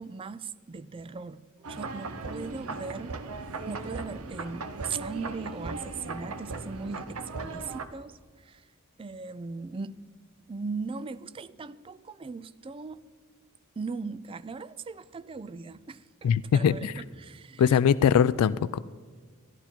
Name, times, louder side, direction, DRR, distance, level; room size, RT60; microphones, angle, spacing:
voice 1, 0.0-3.2 3.7-8.7 9.0-10.0 10.5-13.1 13.8-17.8, right 4 dB, 25° right, 0.3 m, -39 dB
sound 1, 1.6-7.9, right 3 dB, 80° right, 0.8 m, -37 dB
voice 2, 16.2-16.9 17.6-18.8, left 7 dB, 85° left, 0.3 m, -22 dB
13.5 x 11.5 x 4.4 m
head